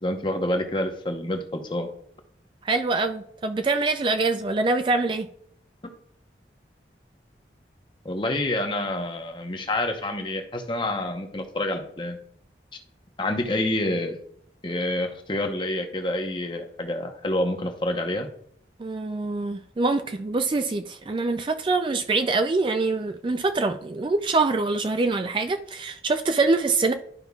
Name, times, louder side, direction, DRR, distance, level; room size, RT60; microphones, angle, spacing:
voice 1, 0.0-1.9 8.0-12.2 13.2-14.2 14.6-18.3, left 1 dB, 25° left, 5 dB, 0.8 m, -28 dB
voice 2, 2.6-5.3 18.8-26.9, right 3 dB, 30° right, 8 dB, 0.3 m, -24 dB
11.5 x 5.3 x 2.3 m, 0.68 s
head